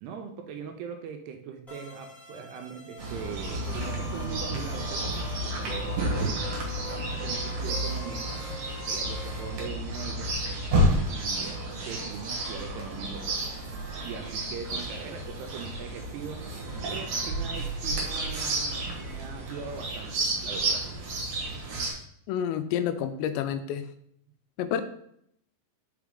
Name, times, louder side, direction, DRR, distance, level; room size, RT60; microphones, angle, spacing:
voice 1, 0.0-5.0 5.5-6.4 6.8-8.3 8.8-10.3 11.0-13.4 14.0-16.4 16.9-20.9, right 6 dB, 80° right, 5 dB, 2.5 m, -40 dB
sound 1, 1.7-9.7, left 2 dB, ahead, 0.6 m, -44 dB
Chirp tweet, 3.0-21.9, right 1 dB, 60° right, 1.9 m, -31 dB
voice 2, 22.3-23.8 24.6-24.8, left 9 dB, 85° left, 9 dB, 2.8 m, -29 dB
6.0 x 4.7 x 3.7 m, 0.71 s
omnidirectional pair, 5.0 m